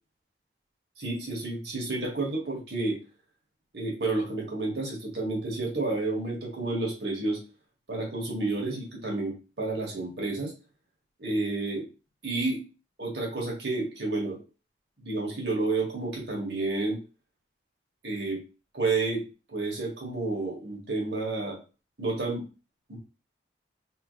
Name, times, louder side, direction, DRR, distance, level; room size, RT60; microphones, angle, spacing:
voice 1, 1.0-3.0 3.7-7.4 7.9-10.5 11.2-11.8 12.2-12.6 13.0-14.4 15.0-17.0 18.0-18.4 18.7-21.6 22.0-22.4 22.9-23.0, right 2 dB, 70° right, -2 dB, 1.6 m, -30 dB
3.2 x 3.0 x 3.2 m, 0.32 s
head